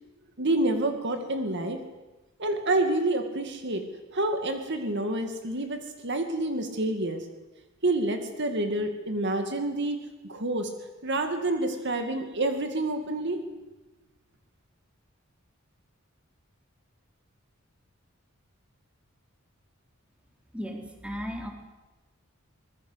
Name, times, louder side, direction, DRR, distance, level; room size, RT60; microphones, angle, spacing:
voice 1, 0.4-1.8 2.4-3.8 4.1-7.3 7.8-10.0 10.3-10.7 11.0-13.4, right 2 dB, 55° right, 6 dB, 2.4 m, -28 dB
voice 2, 20.5-21.5, equal, 5° right, 2 dB, 3.8 m, -35 dB
25.0 x 20.5 x 8.2 m, 1.1 s
head